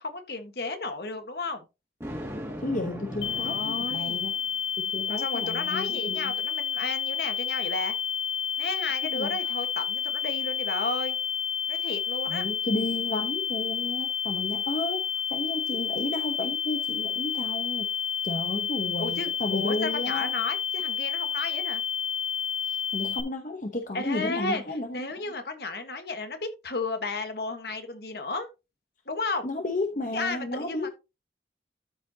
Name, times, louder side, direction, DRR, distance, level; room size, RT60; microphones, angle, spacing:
voice 1, 0.0-1.7 3.4-4.2 5.1-7.9 8.6-11.2 11.7-12.4 19.0-21.8 23.9-28.5 29.1-29.5 30.1-30.9, left 3 dB, 65° left, 1.5 m, -33 dB
Thunder, 2.0-4.5, equal, 15° right, 2.3 m, -39 dB
voice 2, 2.6-4.3 4.8-6.3 9.1-9.5 12.2-15.0 15.3-17.9 18.2-20.3 22.6-25.0 29.4-30.9, left 2 dB, 45° left, 1.0 m, -32 dB
sound 1, 3.2-23.2, left 8 dB, 90° left, 2.2 m, -30 dB
13.0 x 5.0 x 2.8 m
head